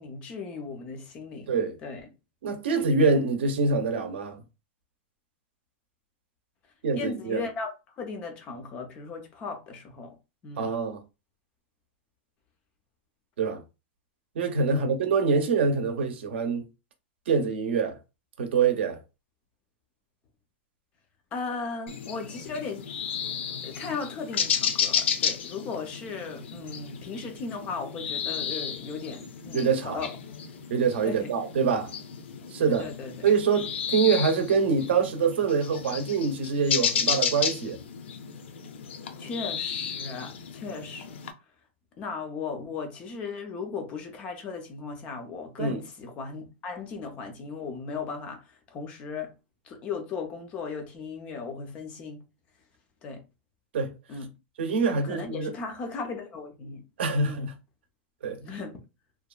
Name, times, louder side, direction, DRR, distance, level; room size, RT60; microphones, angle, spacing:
voice 1, 0.0-1.5 1.8-2.1 7.0-7.7 8.0-10.1 10.4-10.7 14.7-15.0 21.3-22.8 23.6-30.1 31.0-31.3 32.7-33.3 39.2-41.1 42.0-49.3 49.6-52.2 53.0-53.2 54.1-54.3 54.9-56.8 57.2-57.5 58.4-58.8, left 4 dB, 20° left, 0.4 m, -37 dB
voice 2, 2.4-4.4 6.8-7.4 10.6-11.0 13.4-13.6 14.4-16.6 17.3-18.0 18.4-19.0 29.5-30.0 30.7-31.9 32.5-32.9 33.2-37.8 45.6-45.8 53.7-53.9 54.6-55.5 57.0-57.5 58.2-58.4, right 5 dB, 70° right, 0.7 m, -25 dB
sound 1, 21.9-41.3, left 7 dB, 80° left, 0.5 m, -33 dB
2.8 x 2.3 x 2.2 m
supercardioid pair, 180°, 6 cm